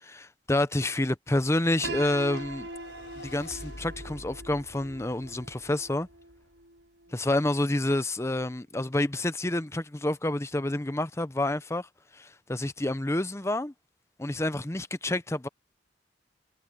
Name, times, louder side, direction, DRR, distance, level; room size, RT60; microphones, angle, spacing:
voice 1, 0.0-2.7 3.2-6.1 7.1-11.9 12.1-13.7 14.2-15.5, left 1 dB, 15° left, 0.7 m, -28 dB
Piano, 1.8-7.7, right 2 dB, 85° right, 6.1 m, -42 dB
sound 1, 2.2-6.7, left 1 dB, 65° left, 5.3 m, -47 dB
head